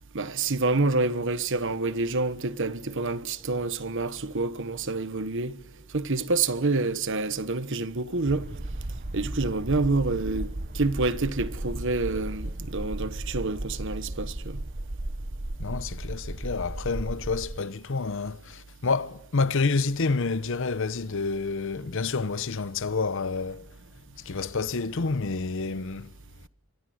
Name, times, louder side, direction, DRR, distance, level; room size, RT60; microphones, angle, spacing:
voice 1, 0.1-5.6 5.9-8.4 9.1-10.5 10.7-14.6, right 3 dB, 55° right, 1.2 m, -27 dB
sound 1, 8.2-17.6, right 1 dB, 40° right, 0.9 m, -35 dB
voice 2, 15.6-23.7 24.2-26.1, left 4 dB, 60° left, 0.8 m, -28 dB
25.5 x 20.5 x 9.5 m
head